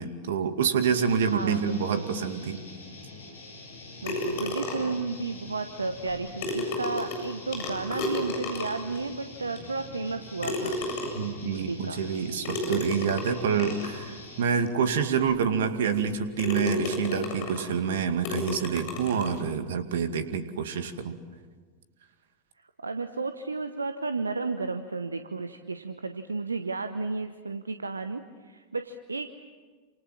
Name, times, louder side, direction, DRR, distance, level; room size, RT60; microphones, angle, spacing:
voice 1, 0.0-2.6 11.1-21.2, right 6 dB, 60° right, 8 dB, 2.3 m, -27 dB
sound 1, 0.8-14.5, left 2 dB, 75° left, 7.4 m, -45 dB
voice 2, 1.2-2.1 4.0-10.8 11.4-12.0 22.8-29.3, right 3 dB, 75° right, 9 dB, 1.0 m, -33 dB
sound 2, 4.1-5.0 6.1-6.2 6.4-9.0 9.6-9.7 10.4-11.4 12.5-14.0 14.7-14.8 15.3-15.4 15.9-16.1 16.4-17.7 18.2-19.4, left 2 dB, 50° left, 7.8 m, -32 dB
29.0 x 27.5 x 7.5 m, 1.5 s
figure-of-eight pair, 90°, 0 cm